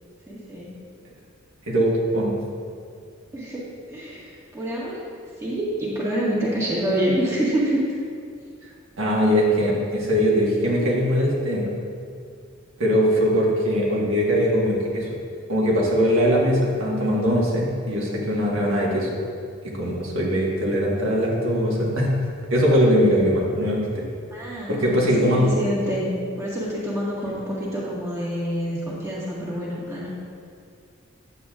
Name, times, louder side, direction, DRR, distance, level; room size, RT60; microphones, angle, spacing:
voice 1, 0.3-0.7 3.3-3.6 3.9-5.1 5.4-7.8 24.3-26.1 26.4-30.1, right 1 dB, 15° right, -7 dB, 1.6 m, -27 dB
voice 2, 1.7-2.4 9.0-11.7 12.8-15.1 15.5-19.1 19.6-22.1 22.5-24.0 24.7-25.5 27.2-27.3, equal, 80° right, -4 dB, 1.5 m, -21 dB
9.6 x 8.2 x 2.4 m, 2.3 s
head